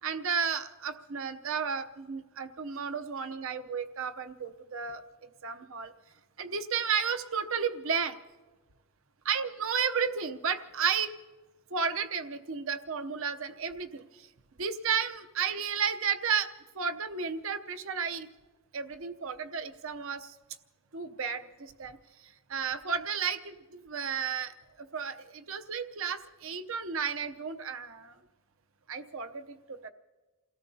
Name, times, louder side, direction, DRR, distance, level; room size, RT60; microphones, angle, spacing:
voice 1, 0.0-5.0 5.4-5.9 6.4-8.2 9.3-11.1 11.7-14.3 14.6-16.5 16.7-18.3 18.7-20.3 20.9-22.0 22.2-28.1 28.9-29.9, right 6 dB, 70° right, 9 dB, 0.7 m, -33 dB
29.0 x 17.5 x 2.8 m, 1.3 s
head